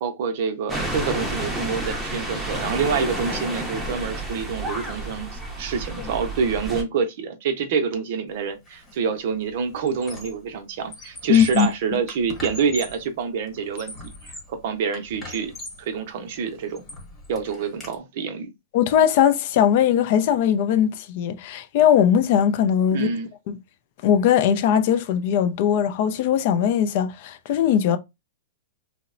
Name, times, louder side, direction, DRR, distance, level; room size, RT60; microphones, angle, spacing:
voice 1, 0.0-14.0 14.2-15.5 15.8-16.8 17.3-18.5 22.9-23.3, right 6 dB, 55° right, 0.6 m, -27 dB
sound 1, 0.7-6.8, right 1 dB, 5° right, 0.6 m, -30 dB
Squeak, 8.7-8.9 9.3-10.5 10.8-13.1 13.5-14.6 14.9-15.9 16.4-17.9, left 2 dB, 15° left, 1.1 m, -40 dB
voice 2, 11.3-11.7 18.7-23.1 23.5-23.6 24.0-28.0, left 9 dB, 50° left, 0.4 m, -20 dB
2.9 x 2.0 x 2.4 m
hypercardioid pair, 145°, 0 cm